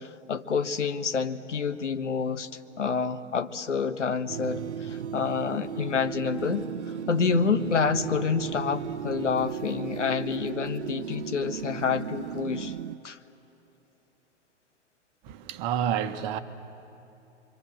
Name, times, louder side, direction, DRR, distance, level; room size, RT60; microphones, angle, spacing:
voice 1, 0.0-2.5 2.8-6.6 7.1-12.7 13.0-13.2, left 5 dB, 80° left, 1.2 m, -28 dB
sound 1, 4.3-13.0, right 9 dB, 70° right, 0.7 m, -35 dB
voice 2, 15.2-16.4, right 9 dB, 40° right, 1.3 m, -29 dB
27.0 x 24.0 x 7.8 m
figure-of-eight pair, 105°, 36 cm